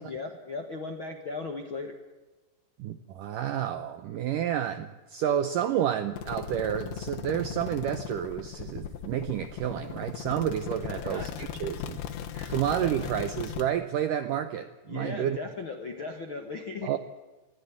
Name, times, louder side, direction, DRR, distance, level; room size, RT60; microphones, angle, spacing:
voice 1, 0.0-1.9 10.9-11.3 12.3-12.5 12.8-12.9 14.9-16.9, left 3 dB, 60° left, 4 dB, 1.3 m, -37 dB
voice 2, 2.8-12.0 12.5-15.4 16.8-17.0, right 10 dB, 75° right, 10 dB, 1.9 m, -30 dB
sound 1, 6.2-13.6, left 9 dB, 90° left, 3.8 m, -37 dB
21.0 x 15.5 x 8.6 m, 1.2 s
omnidirectional pair, 5.0 m